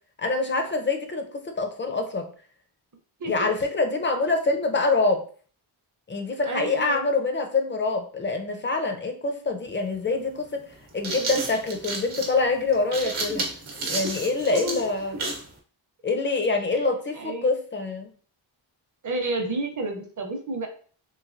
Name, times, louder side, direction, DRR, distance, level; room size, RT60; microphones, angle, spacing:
voice 1, 0.2-2.3 3.3-5.2 6.1-10.6 10.9-13.5 13.9-15.2 16.0-18.1, left 3 dB, 25° left, 5 dB, 0.4 m, -25 dB
voice 2, 6.4-7.1 14.4-14.8 16.7-16.8 17.1-17.5 19.0-20.7, right 2 dB, 40° right, 4 dB, 0.6 m, -30 dB
sound 1, 9.6-9.7 10.7-15.5, right 3 dB, 85° right, 0.9 m, -31 dB
3.1 x 2.9 x 2.5 m, 0.43 s
wide cardioid pair, 150°, 48 cm